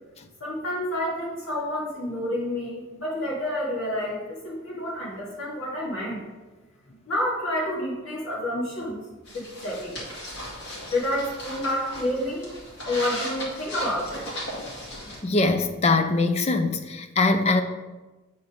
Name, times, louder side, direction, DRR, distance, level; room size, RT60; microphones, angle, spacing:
voice 1, 0.4-6.2 6.9-9.0 9.3-10.1 10.9-12.5 12.8-14.3, left 1 dB, 75° left, -5 dB, 2.1 m, -29 dB
sound 1, 9.3-15.2, equal, 55° left, 1.9 m, -36 dB
voice 2, 15.1-17.6, left 3 dB, 30° left, 8 dB, 0.5 m, -22 dB
7.9 x 4.2 x 5.0 m, 1.2 s
head